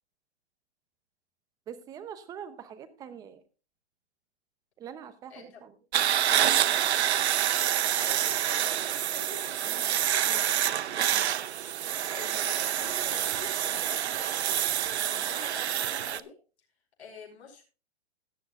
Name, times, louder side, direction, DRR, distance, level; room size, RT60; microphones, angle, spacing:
voice 1, 1.7-3.4 4.8-5.7 10.3-10.5 11.1-11.3, right 8 dB, 10° right, 12 dB, 0.7 m, -44 dB
sound 1, 5.9-16.2, right 10 dB, 90° right, 0.8 m, -27 dB
voice 2, 8.0-10.8 11.7-11.8 12.1-16.3 17.0-17.6, left 5 dB, 85° left, -1 dB, 5.1 m, -46 dB
16.5 x 10.0 x 2.5 m, 0.34 s
hypercardioid pair, 160°, 32 cm